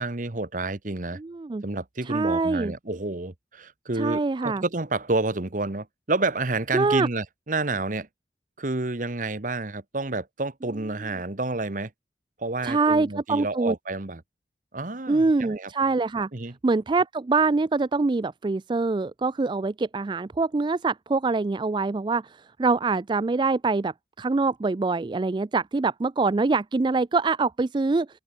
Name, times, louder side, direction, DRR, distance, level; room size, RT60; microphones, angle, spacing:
voice 1, 0.0-1.2 1.6-8.1 8.6-11.9 12.4-14.2 14.7-15.7 16.3-16.5, right 2 dB, 50° right, 1.3 m, -29 dB
voice 2, 1.2-1.6 2.1-2.7 3.9-4.6 6.7-7.1 12.6-13.7 15.1-16.3 16.6-28.1, right 3 dB, 25° right, 0.3 m, -24 dB
open air
head